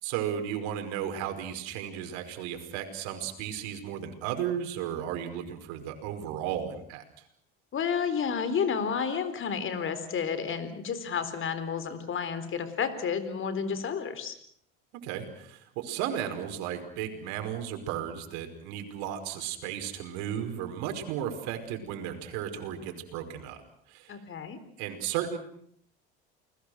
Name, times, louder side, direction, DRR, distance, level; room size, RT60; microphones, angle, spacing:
voice 1, 0.0-7.0 15.0-23.6 23.9-24.2 24.8-25.4, right 9 dB, 75° right, 6 dB, 5.2 m, -34 dB
voice 2, 7.7-14.4 24.1-24.6, left 6 dB, 45° left, 12 dB, 4.2 m, -31 dB
29.5 x 21.0 x 6.4 m, 0.66 s
supercardioid pair, 90°, 29 cm